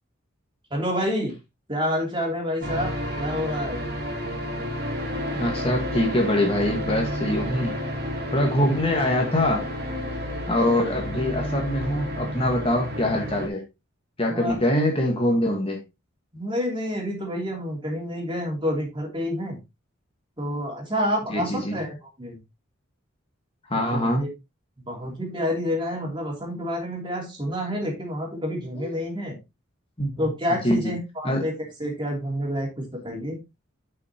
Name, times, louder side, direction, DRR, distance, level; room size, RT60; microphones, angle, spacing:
voice 1, 0.7-1.3 1.7-3.9 14.3-14.5 16.3-19.6 20.4-22.4 23.7-24.3 24.9-29.4 30.2-33.4, equal, 25° right, -1 dB, 2.9 m, -28 dB
sound 1, 2.6-13.5, equal, 50° right, 2.7 m, -31 dB
voice 2, 5.3-7.7 8.3-9.7 10.5-13.6 14.2-15.8 21.3-21.7 23.7-24.2 28.7-28.9 30.0-30.1 30.6-30.9 31.2-31.4, left 1 dB, 25° left, 2 dB, 1.6 m, -23 dB
10.5 x 5.7 x 2.9 m, 0.23 s
head